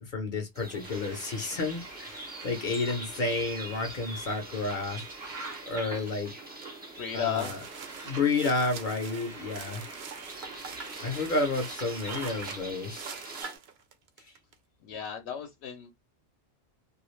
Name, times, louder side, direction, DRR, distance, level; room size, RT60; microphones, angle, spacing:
voice 1, 0.0-5.0 5.7-6.3 7.1-7.6 8.0-9.8 11.0-13.1, left 3 dB, 55° left, 0.7 m, -31 dB
sound 1, 0.5-13.6, right 2 dB, 15° right, 0.4 m, -45 dB
sound 2, 0.8-13.4, right 3 dB, 50° right, 0.9 m, -45 dB
sound 3, 6.6-6.8 7.2-14.5, right 6 dB, 75° right, 0.8 m, -44 dB
voice 2, 6.9-7.8 14.8-15.9, left 9 dB, 85° left, 0.8 m, -34 dB
2.3 x 2.3 x 3.0 m
omnidirectional pair, 1.1 m